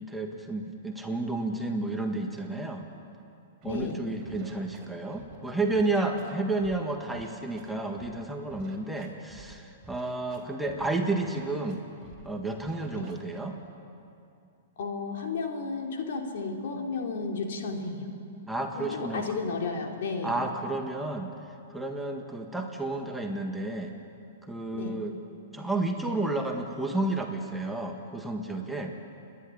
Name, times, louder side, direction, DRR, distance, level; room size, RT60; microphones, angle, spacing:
voice 1, 0.0-2.9 3.6-11.8 12.2-13.6 18.5-19.2 20.2-21.3 21.7-24.0 24.4-25.2 25.5-29.0, right 2 dB, 5° right, 2 dB, 1.7 m, -31 dB
voice 2, 3.6-4.0 12.9-13.1 14.8-18.1 18.7-20.4 24.7-24.9, left 4 dB, 65° left, 2 dB, 3.2 m, -33 dB
Scratching (performance technique), 3.6-3.9 4.2-5.4 5.7-6.8 7.1-8.2 8.5-9.5 9.8-10.9 11.2-11.8 12.0-12.3 12.6-13.4, right 5 dB, 30° right, 4.1 m, -50 dB
28.5 x 11.0 x 9.9 m, 2.6 s
hypercardioid pair, 135°, 0 cm